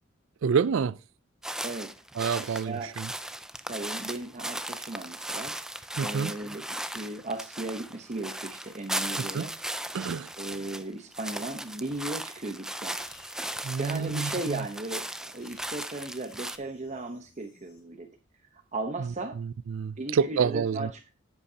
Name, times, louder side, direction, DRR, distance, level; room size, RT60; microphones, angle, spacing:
voice 1, 0.4-1.0 2.2-3.1 6.0-6.3 9.3-9.4 9.9-10.3 13.6-14.7 19.4-20.9, right 6 dB, 65° right, 0.4 m, -28 dB
sound 1, 1.4-10.8 11.1-16.6, right 1 dB, 5° right, 0.4 m, -37 dB
voice 2, 1.6-2.0 2.4-2.9 3.7-5.6 6.0-6.7 6.9-9.5 10.3-13.0 13.8-18.1 18.5-19.4 20.0-21.1, right 2 dB, 35° right, 0.9 m, -36 dB
sound 2, 12.8-17.8, left 5 dB, 85° left, 2.9 m, -60 dB
11.5 x 8.2 x 2.8 m
head